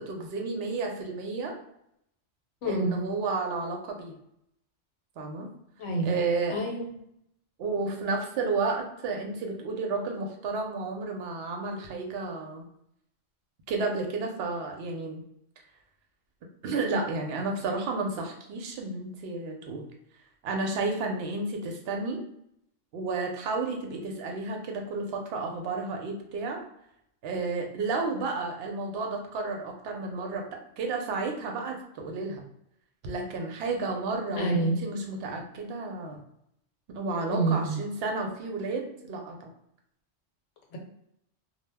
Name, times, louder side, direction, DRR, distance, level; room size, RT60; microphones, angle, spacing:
voice 1, 0.0-1.6 2.7-4.2 5.2-5.5 6.0-6.6 7.6-12.7 13.7-15.2 16.6-19.9 20.4-22.2 22.9-26.6 27.2-32.4 33.0-36.2 36.9-39.5, right 3 dB, 65° right, 2 dB, 0.7 m, -32 dB
voice 2, 2.6-3.0 5.8-6.2 6.5-6.9 7.8-8.1 34.4-34.8 37.3-37.8 40.7-40.8, right 2 dB, 75° left, 0 dB, 1.0 m, -28 dB
2.2 x 2.0 x 3.3 m, 0.76 s
omnidirectional pair, 1.3 m